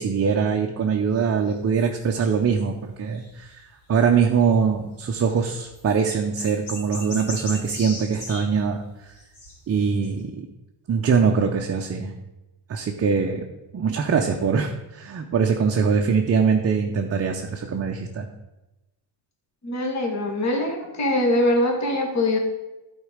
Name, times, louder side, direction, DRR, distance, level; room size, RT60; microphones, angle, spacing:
voice 1, 0.0-3.5 3.9-8.8 9.7-10.5 10.9-12.1 12.7-13.4 13.7-18.3, right 6 dB, 30° right, 2 dB, 0.6 m, -22 dB
sound 1, 1.0-3.5 3.8-3.9 4.1-4.2 4.4-4.5 5.6-10.2, left 2 dB, 65° left, 3.4 m, -38 dB
voice 2, 19.6-22.4, left 1 dB, 35° left, 2 dB, 1.6 m, -23 dB
11.5 x 4.5 x 5.0 m, 1.0 s
cardioid pair, 155°, 46 cm